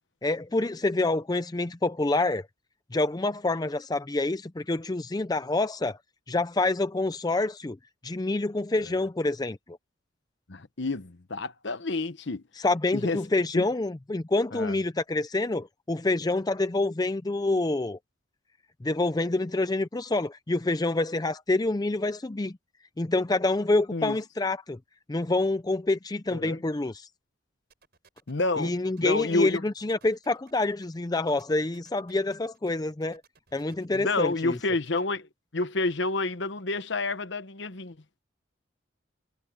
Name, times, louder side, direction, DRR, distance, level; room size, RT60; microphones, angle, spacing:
voice 1, 0.2-2.5 2.9-6.0 6.3-7.8 8.0-9.6 12.6-18.0 18.8-22.5 23.0-24.8 25.1-27.1 28.6-33.2 33.5-34.6, left 2 dB, 20° left, 0.4 m, -27 dB
voice 2, 10.5-12.4 12.9-13.2 13.5-13.6 14.5-14.8 23.9-24.2 26.3-26.6 28.3-28.7 29.0-29.6 33.9-38.0, left 3 dB, 60° left, 1.0 m, -29 dB
sound 1, 27.7-35.0, right 5 dB, 50° right, 6.5 m, -60 dB
head